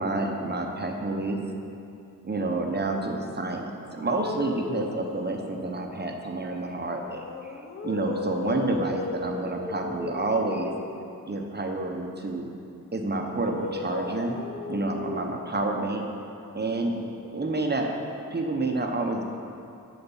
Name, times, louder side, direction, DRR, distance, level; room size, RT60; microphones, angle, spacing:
voice 1, 0.0-1.4 2.2-10.7 11.2-12.5 12.9-14.4 14.7-16.1 16.5-17.9 18.3-19.2, right 2 dB, 30° right, 2 dB, 1.0 m, -29 dB
sound 1, 3.9-6.0 6.8-11.2 13.3-15.6, left 3 dB, 35° left, 0.9 m, -36 dB
11.0 x 5.2 x 7.2 m, 2.7 s
wide cardioid pair, 110°, 35 cm